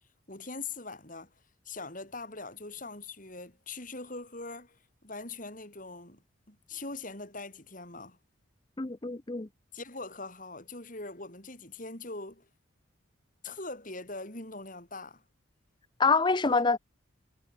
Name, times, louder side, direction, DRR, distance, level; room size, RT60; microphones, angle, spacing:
voice 1, 0.3-1.3 1.6-6.2 6.5-8.2 9.7-12.5 13.4-15.2 16.5-16.6, left 3 dB, 40° left, 6.6 m, -42 dB
voice 2, 8.8-9.5 16.0-16.8, left 4 dB, 25° left, 0.6 m, -26 dB
head